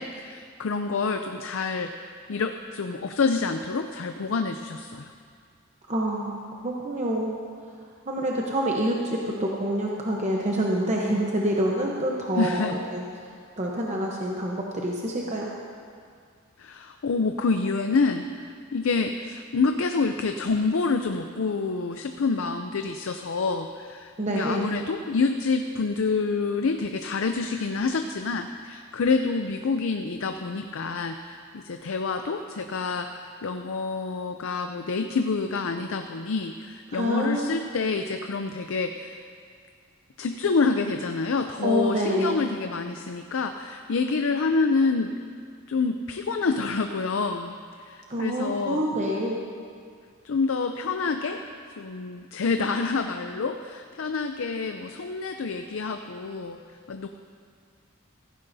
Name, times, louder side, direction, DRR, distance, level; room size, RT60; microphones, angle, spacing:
voice 1, 0.0-1.9 2.3-5.1 12.4-12.8 16.6-39.3 40.2-45.1 45.7-47.5 47.8-48.8 50.2-51.4 51.8-56.6 56.9-57.1, left 4 dB, 75° left, 6 dB, 0.5 m, -27 dB
voice 2, 5.9-7.3 8.1-13.0 13.6-15.5 24.2-24.7 36.9-37.6 41.6-42.4 48.1-49.4, right 1 dB, 35° right, -2 dB, 0.9 m, -27 dB
15.5 x 15.5 x 2.7 m, 2.2 s
head